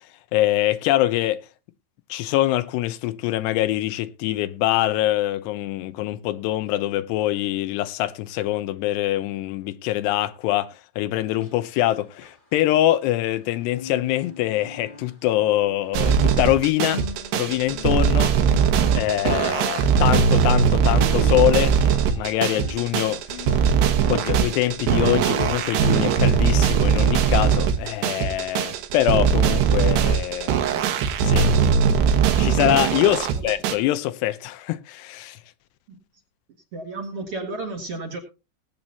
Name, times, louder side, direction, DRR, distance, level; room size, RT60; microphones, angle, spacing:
voice 1, 0.3-1.4 2.1-17.0 17.3-18.3 18.9-21.8 22.1-23.6 24.1-31.5 32.4-35.4, left 14 dB, 90° left, 2.9 m, -24 dB
sound 1, 11.3-13.4 13.7-26.8 27.2-27.4 27.9-28.0, left 5 dB, 30° left, 0.9 m, -42 dB
sound 2, 15.9-33.8, right 7 dB, 85° right, 3.4 m, -20 dB
voice 2, 33.0-33.5 35.9-36.0 36.7-38.2, right 2 dB, 45° right, 2.2 m, -33 dB
19.0 x 9.0 x 2.9 m
omnidirectional pair, 4.7 m